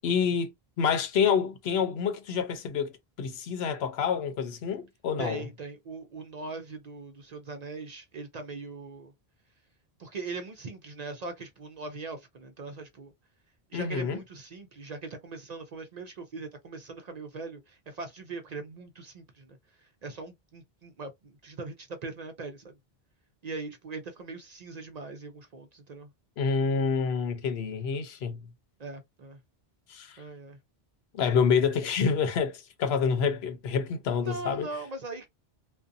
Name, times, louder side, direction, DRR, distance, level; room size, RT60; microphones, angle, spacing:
voice 1, 0.0-0.5 0.8-2.9 3.2-5.4 13.7-14.2 26.4-28.4 29.9-30.2 31.1-34.7, left 6 dB, 85° left, 0.9 m, -27 dB
voice 2, 5.2-9.1 10.0-13.1 13.7-22.7 23.4-26.1 28.8-29.4 30.2-30.6 34.2-35.3, right 3 dB, 55° right, 0.5 m, -40 dB
2.5 x 2.2 x 2.5 m
omnidirectional pair, 1.0 m